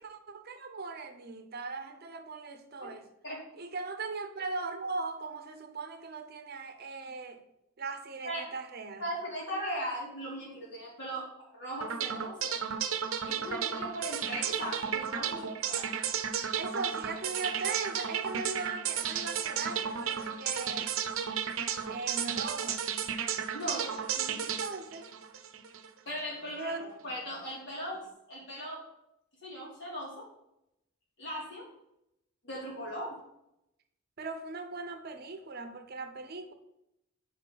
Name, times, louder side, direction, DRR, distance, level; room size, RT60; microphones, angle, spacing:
voice 1, 0.0-3.1 3.6-7.4 7.8-9.1 16.5-20.9 21.9-22.8 24.6-25.0 26.6-26.9 34.2-36.5, right 3 dB, 50° right, 7 dB, 0.7 m, -39 dB
voice 2, 9.0-12.6 13.2-15.9 23.5-24.4 26.1-26.8 27.0-28.8 29.4-30.2 31.2-31.7 32.4-33.2, equal, 60° left, -3 dB, 2.8 m, -38 dB
sound 1, 11.8-25.9, right 8 dB, 85° right, 0.7 m, -33 dB
5.3 x 5.0 x 6.3 m, 0.84 s
head